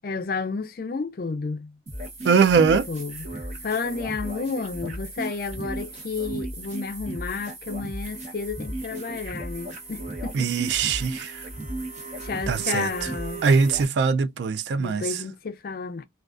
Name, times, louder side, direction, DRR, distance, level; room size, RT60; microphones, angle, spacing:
voice 1, 0.0-1.7 2.6-3.2 3.6-10.5 12.2-13.5 14.8-16.0, left 4 dB, 55° left, 0.4 m, -31 dB
sound 1, 1.9-13.8, right 2 dB, 40° right, 0.8 m, -35 dB
voice 2, 2.2-2.9 10.3-11.4 12.5-13.1 13.4-15.2, right 5 dB, 75° right, 0.3 m, -22 dB
2.3 x 2.3 x 2.4 m
head